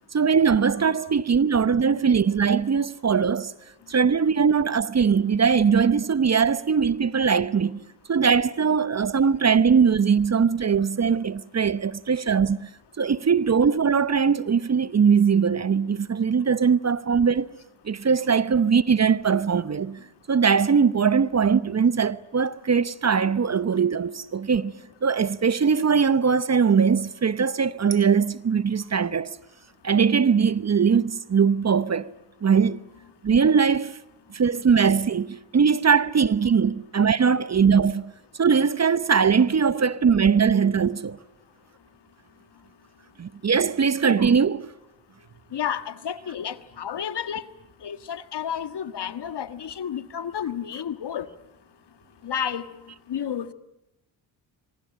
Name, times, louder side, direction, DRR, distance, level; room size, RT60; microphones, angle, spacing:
voice 1, 0.1-3.5 3.9-7.8 8.1-12.7 13.0-17.5 17.8-20.0 20.3-24.7 25.0-29.3 29.8-32.1 32.4-32.8 33.2-34.0 34.3-38.1 38.4-41.2 43.2-44.7, right 6 dB, 35° right, 0.9 m, -21 dB
voice 2, 45.5-47.4 47.8-51.3 52.2-52.6 53.1-53.5, left 8 dB, 55° left, 1.6 m, -31 dB
24.0 x 24.0 x 8.8 m
supercardioid pair, 45°, 48 cm